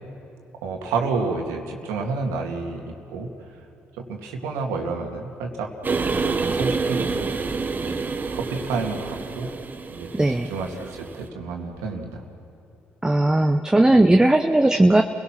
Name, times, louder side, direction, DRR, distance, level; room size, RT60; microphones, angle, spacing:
voice 1, 0.6-2.8 3.1-3.3 4.0-5.7 6.2-7.3 7.8-9.5 9.9-12.1, right 4 dB, 85° right, 2 dB, 2.3 m, -30 dB
sound 1, 5.8-11.3, right 4 dB, 35° right, 1.2 m, -28 dB
voice 2, 10.1-10.5 13.0-15.0, right 1 dB, 15° right, 6 dB, 0.9 m, -17 dB
29.5 x 17.5 x 6.1 m, 2.6 s
supercardioid pair, 55°, 5 cm